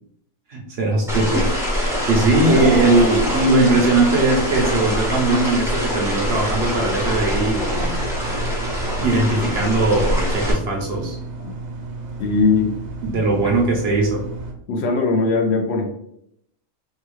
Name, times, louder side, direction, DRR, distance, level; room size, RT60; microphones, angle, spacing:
voice 1, 0.5-1.5 2.1-8.0 9.0-11.2 13.0-14.2, right 2 dB, 60° right, 0 dB, 0.8 m, -19 dB
sound 1, 1.1-10.5, equal, 5° right, 0.4 m, -24 dB
sound 2, 2.4-5.6 6.0-6.2 7.2-7.3, left 1 dB, 85° left, 1.5 m, -30 dB
sound 3, 6.4-14.5, right 3 dB, 90° right, 1.1 m, -33 dB
voice 2, 12.2-12.8 13.4-13.5 14.7-15.9, left 4 dB, 65° left, 3 dB, 0.7 m, -19 dB
3.3 x 2.2 x 3.0 m, 0.74 s
omnidirectional pair, 1.4 m